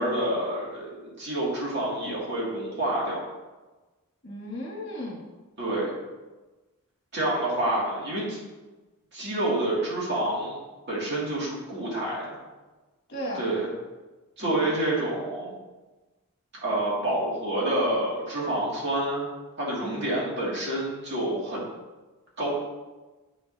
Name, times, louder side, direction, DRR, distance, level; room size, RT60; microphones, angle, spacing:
voice 1, 0.0-3.2 5.6-5.9 7.1-8.4 9.1-10.6 10.9-12.4 13.4-13.7 14.4-15.5 16.6-19.3 19.6-21.7 22.4-22.6, right 1 dB, 50° right, -5 dB, 2.3 m, -28 dB
voice 2, 4.2-5.2 13.1-13.5 14.4-14.7 19.8-20.1, equal, 50° left, -3 dB, 1.7 m, -36 dB
8.2 x 6.0 x 2.7 m, 1.2 s
head